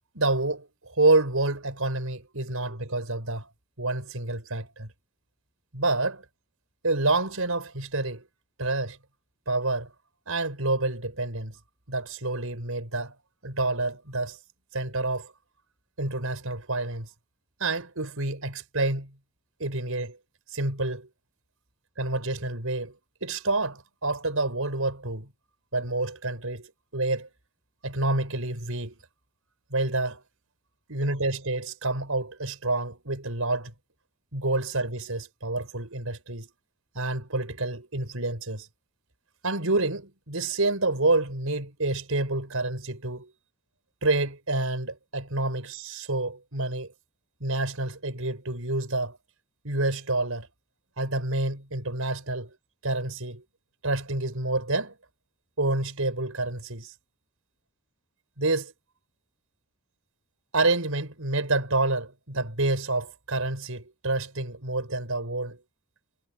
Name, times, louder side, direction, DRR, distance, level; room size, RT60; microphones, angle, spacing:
voice 1, 0.1-3.5 3.8-4.9 5.7-6.2 6.8-8.2 8.6-9.0 9.5-9.9 10.3-11.6 11.9-13.1 13.4-14.4 14.7-15.3 16.0-17.1 17.6-19.1 19.6-20.2 20.5-21.1 22.0-22.9 23.2-25.3 25.7-27.3 27.8-29.0 29.7-30.2 30.9-33.7 34.3-36.5 36.9-38.7 39.4-43.3 44.0-46.9 47.4-49.2 49.6-50.5 51.0-52.5 52.8-53.4 53.8-54.9 55.6-56.9 58.4-58.7 60.5-65.6, right 2 dB, 75° right, 5.1 m, -28 dB
head